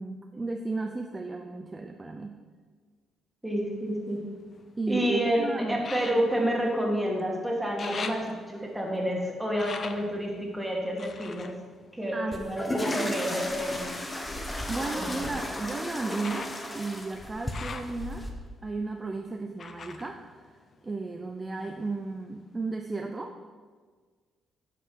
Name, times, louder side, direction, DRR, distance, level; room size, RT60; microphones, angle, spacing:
voice 1, 0.0-2.4 4.8-5.8 12.1-12.4 12.8-13.1 14.7-18.3 18.6-20.5 20.8-23.3, right 3 dB, 25° right, 4 dB, 0.5 m, -34 dB
voice 2, 3.4-4.2 4.9-5.4 5.7-11.5 11.9-13.9 14.9-15.1, equal, 5° right, -1 dB, 1.8 m, -29 dB
sound 1, 3.6-5.0 5.8-7.3 7.6-12.7 13.4-21.2 21.5-22.4 22.8-22.9, left 4 dB, 45° left, 0.6 m, -44 dB
sound 2, 12.3-18.3, left 1 dB, 15° left, 1.0 m, -34 dB
8.3 x 5.4 x 4.7 m, 1.5 s
cardioid pair, 90°, 0 cm